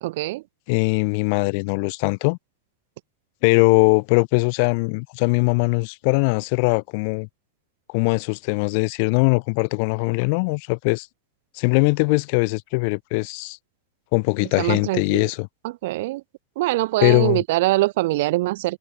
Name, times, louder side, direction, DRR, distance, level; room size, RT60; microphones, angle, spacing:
voice 1, 0.0-0.4 14.6-15.3 15.6-16.2 16.6-18.8, right 19 dB, 50° right, 1.4 m, -23 dB
voice 2, 0.7-2.4 3.4-7.3 7.9-11.1 11.5-13.6 14.1-15.5 17.0-17.4, left 33 dB, 45° left, 1.2 m, -21 dB
open air
figure-of-eight pair, 90°, 0 cm